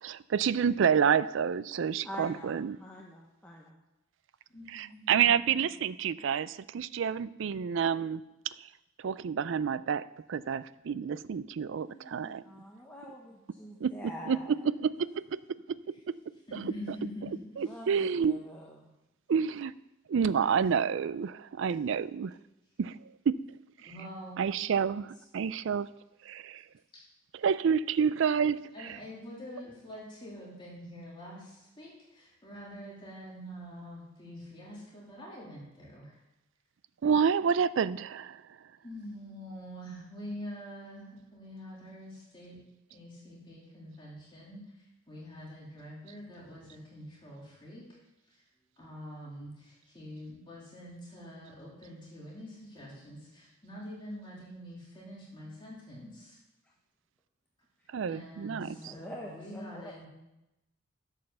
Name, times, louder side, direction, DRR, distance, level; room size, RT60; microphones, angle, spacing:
voice 1, 0.0-2.8 4.7-8.2 9.0-12.3 13.8-13.9 14.3-15.4 16.5-16.6 17.6-18.3 19.3-19.7 20.1-22.4 22.8-23.0 23.3-23.5 24.4-25.9 26.2-26.6 27.4-29.0 37.0-38.4 57.9-58.8, right 7 dB, 60° right, 17 dB, 0.4 m, -29 dB
voice 2, 2.0-3.8 11.6-14.5 17.6-18.9 58.7-60.0, equal, 10° left, -3 dB, 1.0 m, -46 dB
voice 3, 4.5-5.6 16.5-17.3 23.9-24.4 28.7-36.2 38.8-42.6 42.9-48.0 48.3-48.4 48.8-56.4 58.1-60.1, equal, 25° left, -5 dB, 2.8 m, -45 dB
11.5 x 5.5 x 6.8 m, 0.94 s
head